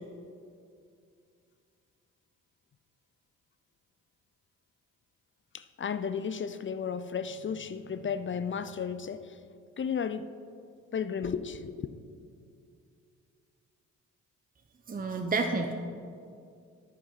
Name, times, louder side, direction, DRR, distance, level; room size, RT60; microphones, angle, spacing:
voice 1, 5.5-9.4 9.8-10.4 10.9-11.9, left 6 dB, 35° left, 13 dB, 0.6 m, -34 dB
voice 2, 14.9-15.7, right 3 dB, 25° right, 4 dB, 0.9 m, -29 dB
11.0 x 9.3 x 4.1 m, 2.4 s
hypercardioid pair, 50°, 34 cm